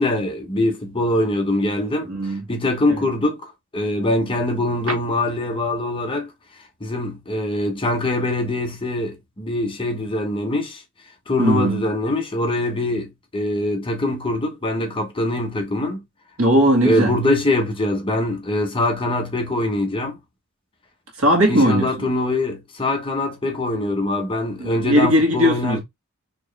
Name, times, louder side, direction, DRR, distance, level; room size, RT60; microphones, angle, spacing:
voice 1, 0.0-2.1 2.5-6.3 6.8-10.8 11.3-16.0 16.8-20.2 21.5-25.8, left 1 dB, 25° left, 0.9 m, -23 dB
voice 2, 2.0-2.4 2.9-3.0 4.9-5.0 11.4-11.8 16.4-17.1 21.2-22.1 24.6-25.8, equal, 70° right, 1.8 m, -18 dB
4.4 x 3.1 x 3.3 m
head